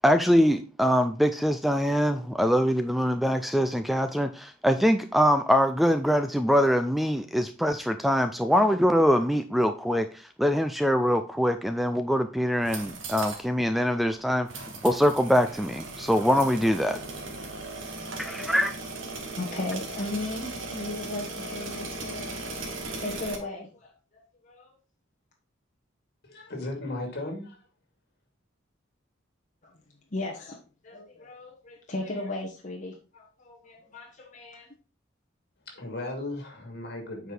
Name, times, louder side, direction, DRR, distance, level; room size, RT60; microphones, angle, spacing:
voice 1, 0.0-10.1 10.4-14.5 14.8-17.0 18.2-18.7, equal, ahead, 8 dB, 0.3 m, -23 dB
sound 1, 12.5-13.5 13.8-13.9 14.5-23.4, right 2 dB, 85° right, 1.7 m, -37 dB
voice 2, 18.0-18.5 19.4-24.7 29.6-29.7 30.1-34.7, left 2 dB, 40° left, -1 dB, 1.2 m, -37 dB
voice 3, 26.2-27.6 35.7-37.3, left 2 dB, 55° left, 2 dB, 2.4 m, -36 dB
8.1 x 4.7 x 3.9 m, 0.35 s
head